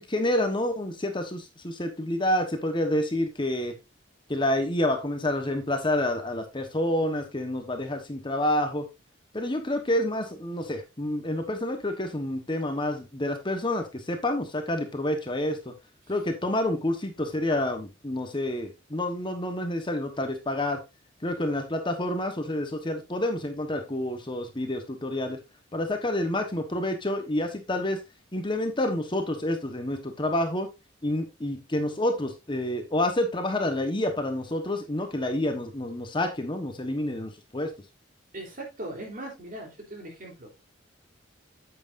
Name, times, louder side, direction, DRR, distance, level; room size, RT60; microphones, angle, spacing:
voice 1, 0.0-3.7 4.3-8.9 9.3-15.7 16.1-20.8 21.2-25.4 25.7-28.0 28.3-30.7 31.0-37.7, left 1 dB, 25° left, 6 dB, 1.2 m, -28 dB
voice 2, 38.3-40.5, right 1 dB, 45° right, 1 dB, 3.5 m, -39 dB
9.1 x 8.0 x 2.6 m, 0.24 s
head